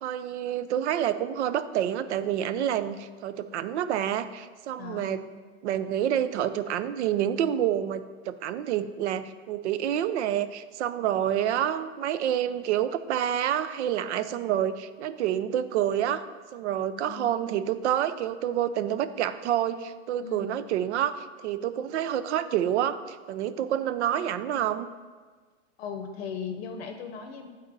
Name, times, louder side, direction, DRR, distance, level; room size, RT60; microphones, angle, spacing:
voice 1, 0.0-5.2 5.6-16.2 16.5-24.9, right 10 dB, 70° right, 13 dB, 0.5 m, -28 dB
voice 2, 4.8-5.3 17.0-17.4 20.2-20.6 25.8-27.5, left 6 dB, 55° left, 5 dB, 0.7 m, -38 dB
8.6 x 4.0 x 3.9 m, 1.4 s
hypercardioid pair, 135°, 37 cm